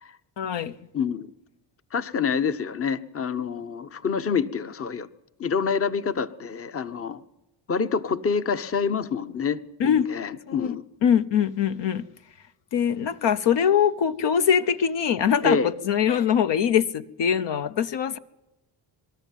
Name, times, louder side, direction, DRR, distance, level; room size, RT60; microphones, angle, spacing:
voice 1, 0.4-0.7 9.8-10.1 10.5-10.7 11.0-12.0 12.7-18.2, left 8 dB, 60° left, 10 dB, 0.8 m, -23 dB
voice 2, 0.9-1.3 1.9-5.1 5.4-7.2 7.7-10.8 15.4-15.7, left 6 dB, 30° left, 13 dB, 0.9 m, -27 dB
21.0 x 13.5 x 9.1 m, 0.95 s
cardioid pair, 80°, 49 cm